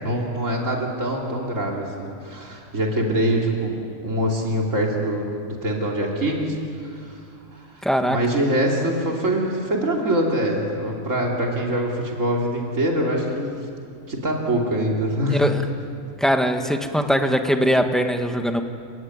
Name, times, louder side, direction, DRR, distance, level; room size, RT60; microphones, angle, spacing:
voice 1, 0.0-3.7 4.0-7.2 7.5-7.8 8.1-13.5 14.1-15.5, right 1 dB, 80° right, -1 dB, 3.4 m, -24 dB
voice 2, 7.8-8.2 15.3-15.6 16.2-18.6, equal, ahead, 5 dB, 1.5 m, -21 dB
29.5 x 17.5 x 9.6 m, 2.5 s
omnidirectional pair, 1.3 m